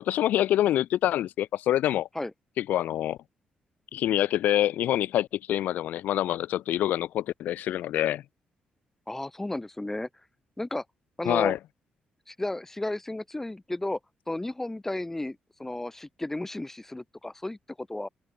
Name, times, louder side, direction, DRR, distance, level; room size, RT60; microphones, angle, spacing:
voice 1, 0.0-2.1 2.6-3.2 3.9-8.2 11.2-11.6, left 12 dB, 85° left, 0.4 m, -26 dB
voice 2, 9.1-10.1 10.6-10.8 11.2-11.5 12.3-14.0 14.3-18.1, left 2 dB, 10° left, 1.8 m, -33 dB
cardioid pair, 95°, 3 cm